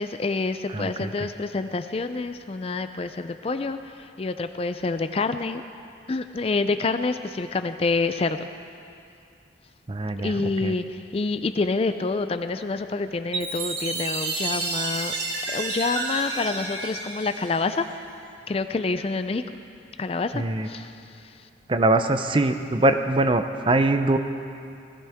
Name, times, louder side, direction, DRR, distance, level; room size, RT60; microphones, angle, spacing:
voice 1, 0.0-5.6 6.1-8.5 10.2-15.2 15.5-17.9 18.5-19.6 20.0-21.4, left 3 dB, 30° left, 10 dB, 0.4 m, -27 dB
voice 2, 0.7-1.3 9.9-10.8 20.3-20.7 21.7-24.2, right 2 dB, 25° right, 8 dB, 0.5 m, -23 dB
Chime, 13.3-18.0, right 3 dB, 60° right, 2.0 m, -30 dB
18.5 x 15.5 x 3.5 m, 2.5 s
head